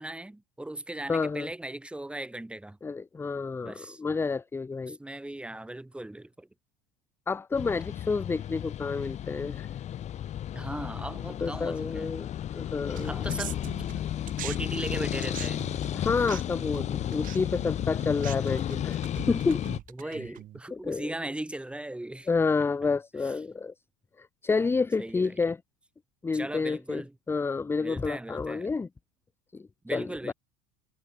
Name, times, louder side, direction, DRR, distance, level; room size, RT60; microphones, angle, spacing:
voice 1, 0.0-2.8 3.6-4.0 4.9-6.5 10.5-12.2 13.0-13.6 14.3-15.6 16.3-16.4 19.9-22.3 23.2-23.3 25.0-25.4 26.3-27.1 27.8-28.7 29.8-30.3, right 1 dB, 5° right, 1.2 m, -38 dB
voice 2, 1.1-1.5 2.8-5.0 7.3-9.7 11.4-13.2 15.9-19.0 19.3-19.7 20.0-20.2 20.7-21.1 22.3-23.7 24.2-25.6 26.2-27.0 27.3-28.9 29.5-30.3, left 4 dB, 15° left, 0.6 m, -29 dB
sound 1, 7.5-19.8, left 11 dB, 40° left, 1.0 m, -33 dB
sound 2, 13.0-14.6 14.8-20.6, right 13 dB, 50° right, 2.6 m, -42 dB
hypercardioid pair, 80°, 18 cm